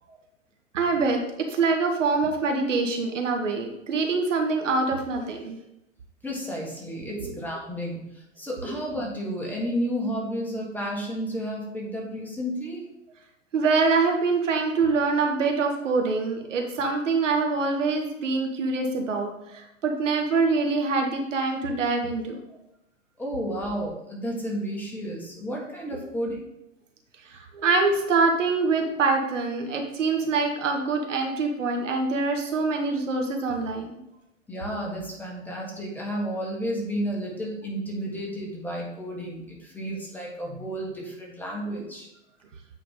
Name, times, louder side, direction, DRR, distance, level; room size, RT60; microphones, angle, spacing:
voice 1, 0.7-1.2 1.5-5.6 7.1-7.3 8.6-8.7 13.5-22.4 27.2-33.9, right 4 dB, 70° right, 3 dB, 1.2 m, -25 dB
voice 2, 6.2-12.8 23.2-26.4 34.5-42.1, equal, 5° left, -3 dB, 1.5 m, -32 dB
8.3 x 4.5 x 3.7 m, 0.85 s
figure-of-eight pair, 105°, 39 cm